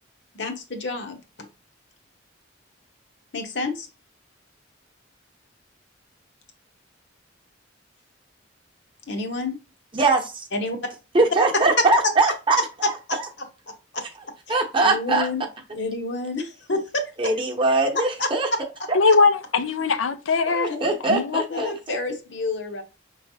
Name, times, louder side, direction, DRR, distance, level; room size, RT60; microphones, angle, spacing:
voice 1, 0.3-1.2 3.3-3.9 9.1-9.6 10.5-10.8 12.8-13.2 13.9-14.0 14.8-15.4 15.7-17.3 17.9-18.3 18.8-18.9 20.7-20.8 21.5-22.8, left 2 dB, 60° left, 1.0 m, -28 dB
voice 2, 9.9-10.5 11.1-12.6 12.8-12.9 14.5-15.3 17.2-18.5 20.5-22.0, right 3 dB, 25° right, 0.9 m, -21 dB
voice 3, 18.9-21.6, left 4 dB, 90° left, 0.5 m, -21 dB
5.7 x 3.2 x 2.7 m
head